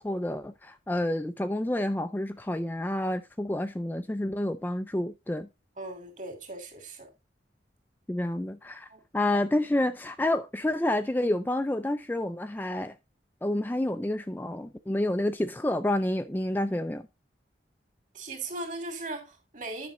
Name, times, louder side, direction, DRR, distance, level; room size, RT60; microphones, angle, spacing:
voice 1, 0.0-5.5 8.1-12.9 13.4-17.0, left 1 dB, 10° left, 0.4 m, -29 dB
voice 2, 5.8-7.1 8.9-9.0 18.1-19.9, right 2 dB, 45° right, 2.7 m, -38 dB
10.5 x 6.0 x 3.9 m
head